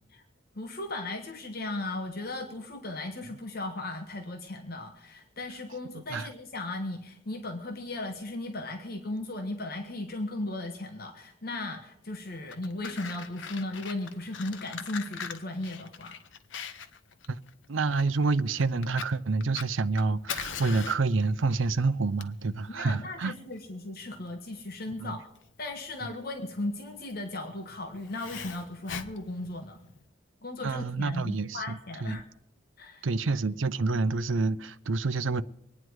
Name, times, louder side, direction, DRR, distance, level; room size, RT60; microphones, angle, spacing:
voice 1, 0.5-16.2 22.7-25.3 25.6-29.8 30.4-32.2 32.8-33.1, left 2 dB, 55° left, 1.4 m, -36 dB
Fire, 12.3-30.0, left 7 dB, 75° left, 1.0 m, -42 dB
voice 2, 17.7-23.3 25.0-25.2 30.6-32.2 33.0-35.4, right 3 dB, 85° right, 0.6 m, -28 dB
24.0 x 9.7 x 4.7 m
head